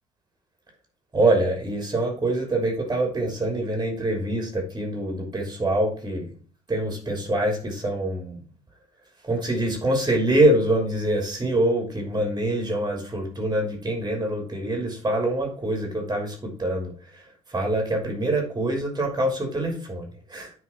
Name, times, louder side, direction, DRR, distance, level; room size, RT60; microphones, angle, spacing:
voice 1, 1.1-6.3 6.7-8.4 9.2-17.2 17.5-20.6, right 1 dB, 25° right, 2 dB, 3.0 m, -25 dB
9.9 x 4.6 x 4.4 m, 0.43 s
hypercardioid pair, 65°, 15 cm